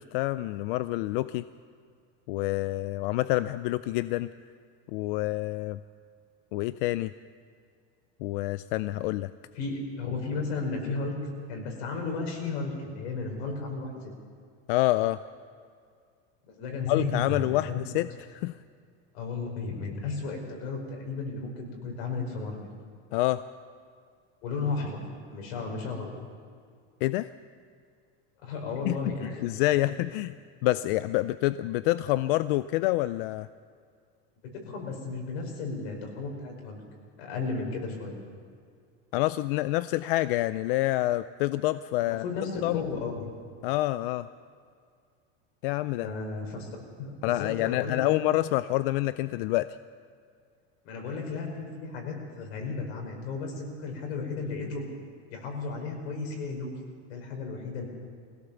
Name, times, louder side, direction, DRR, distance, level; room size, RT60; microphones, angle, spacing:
voice 1, 0.0-1.4 2.3-4.3 4.9-5.8 6.5-7.1 8.2-9.3 14.7-15.2 16.9-18.6 23.1-23.4 27.0-27.3 28.8-30.3 30.6-33.5 39.1-42.2 42.6-42.8 43.6-44.3 45.6-46.1 47.2-49.7, left 17 dB, 55° left, 14 dB, 0.4 m, -27 dB
voice 2, 9.5-11.1 11.5-14.1 16.5-17.8 19.1-22.7 24.4-25.0 25.3-26.1 28.4-29.8 34.4-36.8 37.2-38.2 42.0-43.3 46.0-46.7 47.0-48.2 50.8-54.9 55.3-56.7 57.1-57.9, left 4 dB, 75° left, 1 dB, 5.5 m, -34 dB
22.0 x 16.5 x 7.1 m, 2.2 s
cardioid pair, 175°, 32 cm